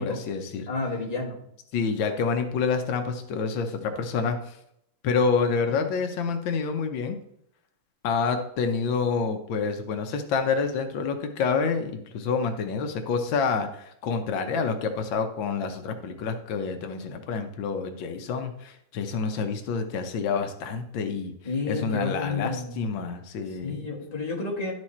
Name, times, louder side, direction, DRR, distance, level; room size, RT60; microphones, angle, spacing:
voice 1, 0.0-0.7 1.7-4.6 5.0-7.2 8.0-21.3 21.7-23.9, left 5 dB, 90° left, 6 dB, 1.6 m, -28 dB
voice 2, 0.7-1.4 5.8-5.9 21.4-22.9 23.6-24.7, left 3 dB, 20° left, -4 dB, 2.0 m, -30 dB
11.5 x 4.8 x 4.2 m, 0.73 s
omnidirectional pair, 2.0 m